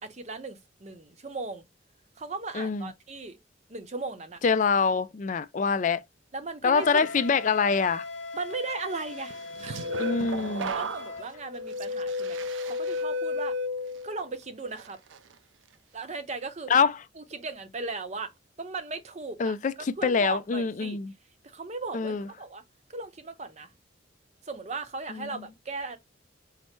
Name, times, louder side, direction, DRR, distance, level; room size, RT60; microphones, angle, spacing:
voice 1, 0.0-1.6 2.2-3.4 3.7-4.4 6.3-7.2 8.3-9.4 9.6-9.9 10.5-13.6 14.0-15.0 15.9-16.7 17.2-18.3 18.6-19.6 20.0-21.0 21.4-22.6 22.9-23.7 24.4-26.0, right 3 dB, 35° right, 0.7 m, -37 dB
voice 2, 2.5-2.9 4.4-6.0 6.6-8.0 10.0-10.7 16.7-16.9 19.4-19.7 20.0-21.1 21.9-22.2 25.1-25.4, left 5 dB, 40° left, 0.4 m, -25 dB
Wind instrument woodwind instrument, 6.7-11.3, left 3 dB, 90° left, 1.1 m, -40 dB
sound 1, 9.3-14.3 14.8-15.2, left 2 dB, 80° right, 0.4 m, -33 dB
5.7 x 2.1 x 4.4 m
head